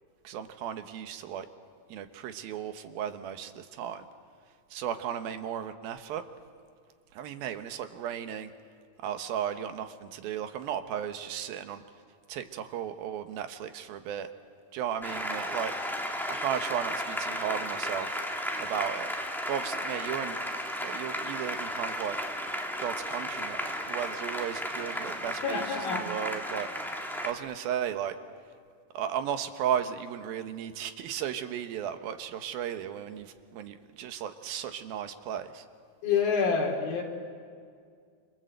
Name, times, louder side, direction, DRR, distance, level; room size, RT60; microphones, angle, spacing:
voice 1, 0.2-1.5 1.9-4.1 4.7-6.2 7.1-8.5 9.0-11.8 12.3-14.3 14.7-15.7 16.3-18.2 18.6-19.1 19.5-20.4 20.8-22.2 22.8-25.6 25.9-26.7 27.2-28.2 28.9-35.6, right 9 dB, 85° right, 8 dB, 3.1 m, -35 dB
Applause, 15.0-27.3, equal, ahead, 1.5 m, -34 dB
voice 2, 25.4-26.0 36.0-37.0, left 5 dB, 85° left, 1 dB, 5.1 m, -27 dB
27.5 x 26.5 x 7.9 m, 2.1 s
omnidirectional pair, 4.1 m